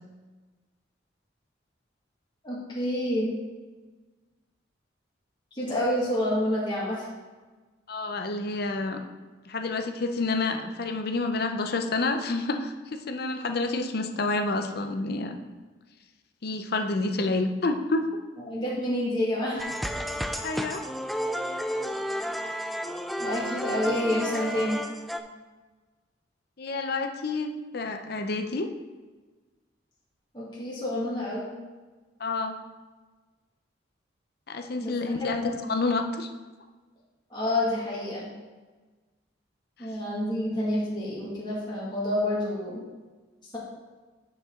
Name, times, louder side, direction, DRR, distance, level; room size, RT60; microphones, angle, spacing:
voice 1, 2.4-3.3 5.5-7.1 18.5-19.7 23.2-24.8 30.3-31.5 34.8-34.9 35.2-35.6 37.3-38.3 39.8-42.8, left 1 dB, 25° left, -7 dB, 2.0 m, -28 dB
voice 2, 7.9-9.0 9.5-15.4 16.4-18.0 20.4-20.8 26.6-28.7 32.2-32.5 34.5-36.3, left 3 dB, 55° left, 6 dB, 0.7 m, -29 dB
sound 1, 19.6-25.2, equal, ahead, 0.3 m, -32 dB
9.3 x 5.4 x 3.7 m, 1.3 s
head